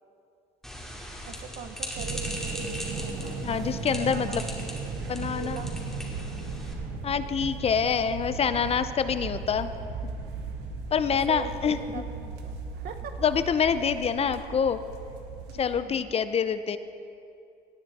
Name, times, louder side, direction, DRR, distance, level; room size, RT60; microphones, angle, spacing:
sound 1, 0.6-6.7, equal, ahead, 2.3 m, -39 dB
voice 1, 1.2-3.3 3.9-4.4 5.4-5.7 11.0-13.2 15.5-16.1, right 7 dB, 65° right, 8 dB, 1.0 m, -42 dB
sound 2, 2.0-15.8, right 4 dB, 90° right, 1.3 m, -36 dB
voice 2, 3.4-4.4 5.1-5.6 7.0-9.7 10.9-12.0 13.2-14.8 15.6-16.8, left 7 dB, 35° left, 12 dB, 0.5 m, -26 dB
18.5 x 9.3 x 4.1 m, 2.5 s
cardioid pair, 110°, 17 cm